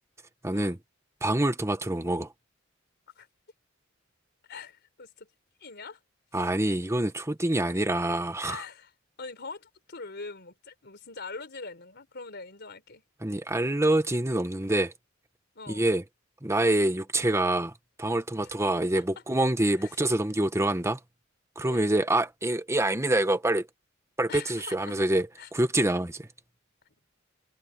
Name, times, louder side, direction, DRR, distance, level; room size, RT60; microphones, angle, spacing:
voice 1, 0.4-0.8 1.2-2.3 6.3-8.6 13.2-14.9 15.7-16.0 16.4-17.7 18.0-21.0 21.6-23.7 24.2-25.3 25.5-26.3, right 1 dB, 15° right, 1.2 m, -26 dB
voice 2, 4.5-5.3 5.6-6.0 8.4-8.9 9.2-13.0 15.6-15.9 19.2-19.3 19.8-19.9 21.6-22.0 24.3-25.0 25.4-25.5, left 4 dB, 55° left, 3.9 m, -43 dB
head